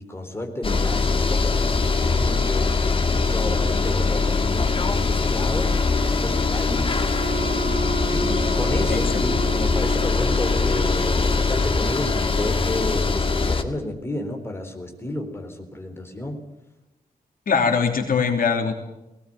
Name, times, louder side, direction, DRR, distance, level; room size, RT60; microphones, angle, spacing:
voice 1, 0.0-2.7 3.2-5.7 6.2-7.0 8.1-16.4, left 1 dB, 15° left, 3 dB, 3.9 m, -32 dB
sound 1, 0.6-13.6, left 4 dB, 35° left, 1.9 m, -22 dB
Wind instrument woodwind instrument, 7.0-11.7, right 4 dB, 70° right, 6.0 m, -32 dB
voice 2, 8.9-9.2 17.5-18.7, left 5 dB, 70° left, 3 dB, 3.0 m, -22 dB
20.0 x 18.5 x 9.1 m, 0.93 s
wide cardioid pair, 145°, 15 cm